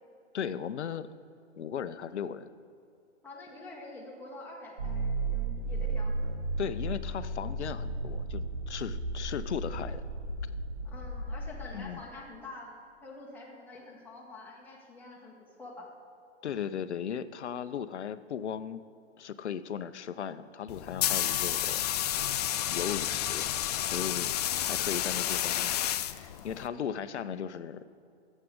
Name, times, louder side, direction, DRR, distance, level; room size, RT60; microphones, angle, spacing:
voice 1, 0.3-1.1 1.6-2.5 6.6-10.0 11.7-12.0 16.4-18.8 19.2-21.8 22.7-23.5 23.8-24.3 24.6-27.9, left 8 dB, 75° left, 14 dB, 0.7 m, -37 dB
voice 2, 3.2-6.3 10.8-12.7 13.0-15.9 24.4-24.7, left 2 dB, 5° left, -3 dB, 1.6 m, -47 dB
sound 1, 4.8-11.6, right 2 dB, 70° right, 2.8 m, -34 dB
sound 2, 20.7-26.7, left 12 dB, 35° left, 0.4 m, -30 dB
13.5 x 7.6 x 4.9 m, 2.5 s
hypercardioid pair, 125°, 34 cm